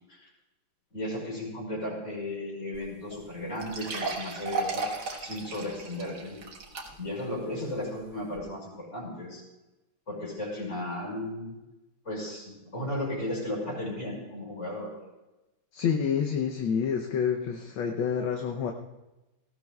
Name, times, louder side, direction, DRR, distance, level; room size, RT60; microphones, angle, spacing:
voice 1, 0.9-4.8 5.2-6.4 7.0-9.4 10.1-11.5 12.0-14.9, left 1 dB, 30° left, -2 dB, 5.4 m, -35 dB
sound 1, 2.7-2.8 3.1-3.2 3.6-7.2 7.7-7.8 8.4-8.5, right 3 dB, 55° right, 2.0 m, -35 dB
voice 2, 15.7-18.7, left 7 dB, 70° left, 3 dB, 1.5 m, -28 dB
18.5 x 16.5 x 2.3 m, 1.0 s
omnidirectional pair, 2.4 m